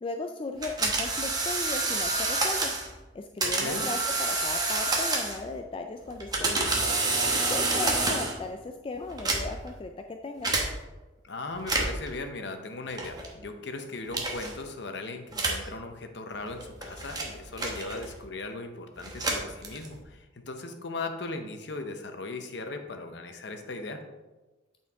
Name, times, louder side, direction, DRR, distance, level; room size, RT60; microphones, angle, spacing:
voice 1, 0.0-2.7 3.1-6.7 7.3-10.5, left 3 dB, 30° left, 4 dB, 0.3 m, -36 dB
sound 1, 0.6-2.9 3.4-5.5 6.1-8.4 9.1-9.7 10.4-10.7 11.6-12.1 13.0-13.3 14.1-14.5 15.3-15.7 16.5-18.2 19.0-20.0, right 3 dB, 20° right, 0.9 m, -28 dB
voice 2, 3.4-3.8 11.2-24.0, left 3 dB, 65° left, 6 dB, 0.7 m, -38 dB
8.3 x 4.4 x 3.5 m, 1.2 s
head